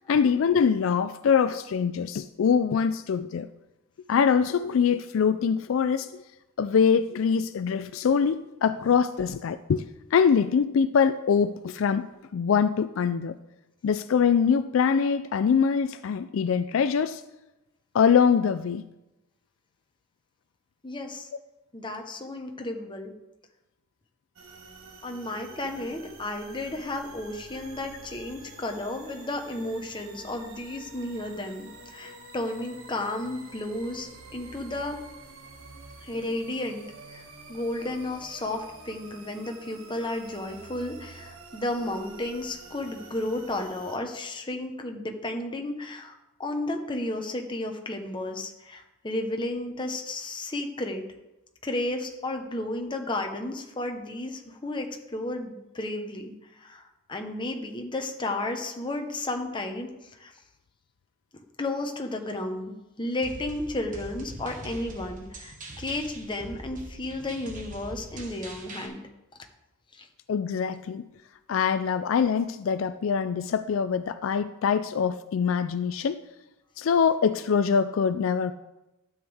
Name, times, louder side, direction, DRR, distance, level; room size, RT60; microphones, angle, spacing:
voice 1, 0.1-3.5 4.1-6.1 6.6-9.8 10.1-12.1 12.3-13.3 13.8-17.2 17.9-18.8 70.3-71.0 71.5-76.2 76.8-78.5, left 6 dB, 70° left, 12 dB, 0.4 m, -23 dB
voice 2, 20.8-21.3 21.7-23.1 25.0-35.0 36.0-37.2 37.5-51.0 51.6-60.3 61.6-69.0 69.9-70.1, left 1 dB, 25° left, 4 dB, 1.0 m, -33 dB
sound 1, 24.4-44.0, right 3 dB, 80° right, 1.4 m, -48 dB
sound 2, 63.2-68.9, right 1 dB, 40° right, 1.5 m, -42 dB
12.5 x 8.0 x 3.5 m, 0.97 s
head